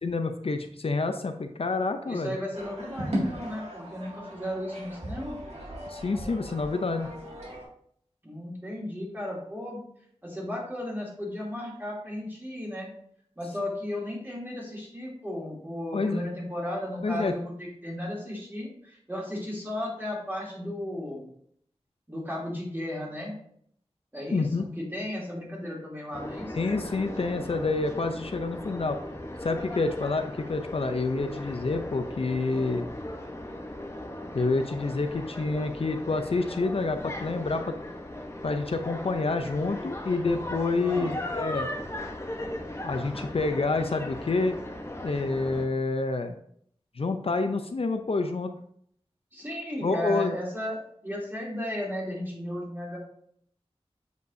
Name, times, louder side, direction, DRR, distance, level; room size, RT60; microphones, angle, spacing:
voice 1, 0.0-2.4 5.9-7.1 15.9-16.2 17.0-17.3 24.3-24.7 26.5-29.0 29.4-32.9 34.3-37.8 38.4-41.7 42.8-44.6 45.0-46.4 47.0-48.5 49.8-50.4, left 3 dB, 65° left, 7 dB, 0.5 m, -28 dB
voice 2, 2.0-5.4 8.2-9.8 10.2-12.9 13.4-21.3 22.1-23.3 24.1-26.6 40.8-41.1 49.3-50.8 51.0-53.0, left 1 dB, 20° right, -5 dB, 2.9 m, -35 dB
sound 1, 2.5-7.6, right 1 dB, 80° right, 2.2 m, -36 dB
sound 2, 26.1-45.7, left 1 dB, 25° left, 1.0 m, -38 dB
8.0 x 5.1 x 2.7 m, 0.66 s
wide cardioid pair, 50°, 11 cm